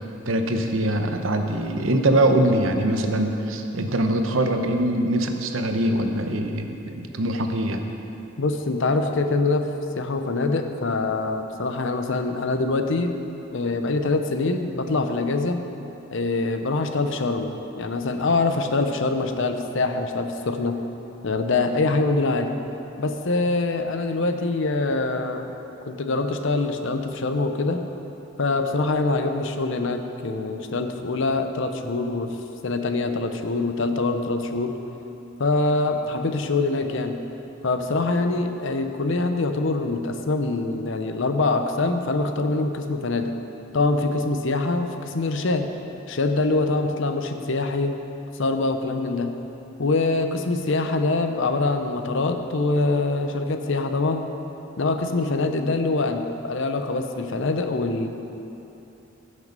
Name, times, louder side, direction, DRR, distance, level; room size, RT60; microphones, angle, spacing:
voice 1, 0.2-7.8, right 1 dB, 75° right, 5 dB, 0.9 m, -23 dB
voice 2, 8.4-9.7 10.0-13.2 13.5-15.6 16.1-20.8 21.2-22.5 23.0-25.5 25.9-27.8 28.4-32.3 32.6-34.7 35.4-37.2 37.6-43.3 43.7-45.7 46.1-48.0 48.4-49.3 49.8-54.3 54.8-58.1, left 3 dB, 70° left, 6 dB, 0.8 m, -24 dB
15.5 x 6.5 x 5.3 m, 3.0 s
head